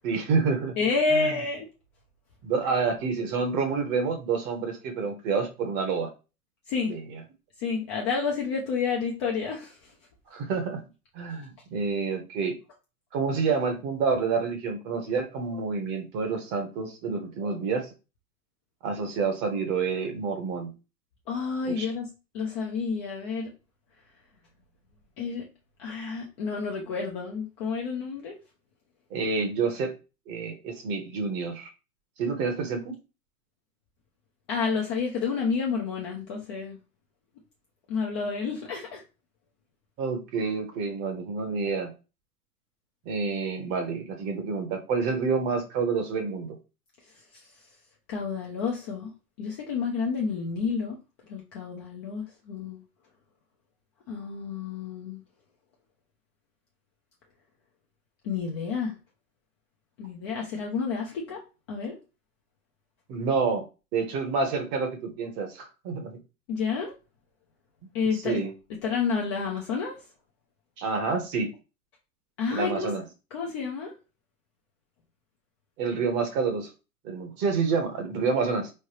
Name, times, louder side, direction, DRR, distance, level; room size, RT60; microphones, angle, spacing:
voice 1, 0.0-0.7 1.1-1.3 2.4-6.1 6.9-7.2 10.3-10.8 11.1-12.6 13.1-17.9 18.8-20.7 21.6-21.9 29.1-29.9 30.3-31.7 32.2-33.0 40.0-41.9 43.0-46.6 63.1-63.6 63.9-66.2 68.2-68.5 70.8-71.5 72.5-73.0 75.8-76.7 77.0-78.7, right 5 dB, 25° right, 5 dB, 0.9 m, -28 dB
voice 2, 0.8-1.7 6.7-6.9 7.6-9.9 21.3-22.1 22.3-23.5 25.2-25.5 25.8-28.4 34.5-36.8 37.9-39.0 48.1-49.1 49.4-51.0 51.3-52.8 54.1-55.2 58.2-58.9 60.0-61.4 61.7-62.0 66.5-66.9 67.9-68.4 68.8-69.9 72.4-72.9 73.3-73.9, left 5 dB, 20° left, -1 dB, 0.5 m, -29 dB
4.4 x 3.3 x 2.9 m, 0.30 s
figure-of-eight pair, 115°, 45 cm